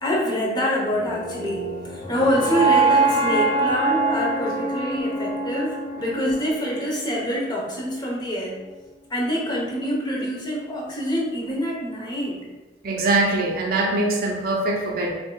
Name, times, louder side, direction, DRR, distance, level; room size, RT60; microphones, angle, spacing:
voice 1, 0.0-8.6 9.1-12.4, equal, 25° left, -3 dB, 0.8 m, -26 dB
sound 1, 0.9-7.0, right 3 dB, 30° right, 1.1 m, -24 dB
voice 2, 12.8-15.1, right 2 dB, 55° right, 0 dB, 0.6 m, -22 dB
5.2 x 2.9 x 2.2 m, 1.2 s
head